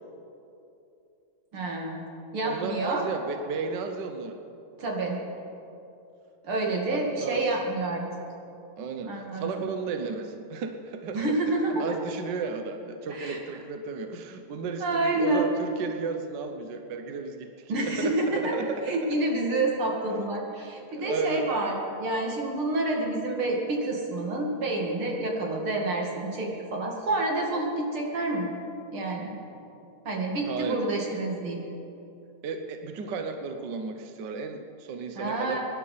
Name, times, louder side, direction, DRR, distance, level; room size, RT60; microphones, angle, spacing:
voice 1, 1.5-2.0 2.3-3.0 4.8-5.2 6.4-8.0 9.1-9.7 11.1-12.0 13.1-13.4 14.8-15.5 17.7-18.5 18.9-28.5 28.9-29.3 30.0-31.6 35.1-35.6, right 2 dB, 80° right, 0 dB, 3.1 m, -28 dB
voice 2, 2.4-4.4 6.9-7.6 8.8-11.2 11.8-19.0 20.9-21.5 30.4-30.8 32.4-35.6, right 4 dB, 60° right, 6 dB, 1.4 m, -34 dB
24.0 x 10.5 x 5.6 m, 2.8 s
omnidirectional pair, 2.3 m